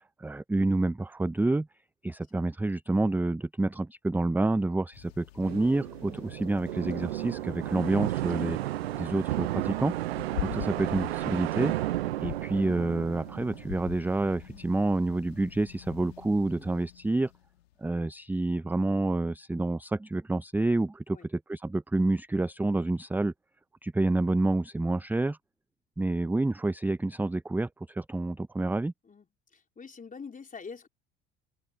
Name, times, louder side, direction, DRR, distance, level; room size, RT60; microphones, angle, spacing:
voice 1, 0.2-1.7 2.0-9.9 10.4-11.7 12.2-17.3 17.8-23.3 23.8-25.4 26.0-28.9, right 2 dB, 5° right, 0.6 m, -28 dB
sound 1, 4.9-18.0, left 15 dB, 75° left, 2.6 m, -45 dB
sound 2, 5.4-14.2, right 16 dB, 75° right, 0.7 m, -33 dB
voice 2, 29.5-30.9, left 5 dB, 25° left, 4.0 m, -45 dB
open air
figure-of-eight pair, 60°, 31 cm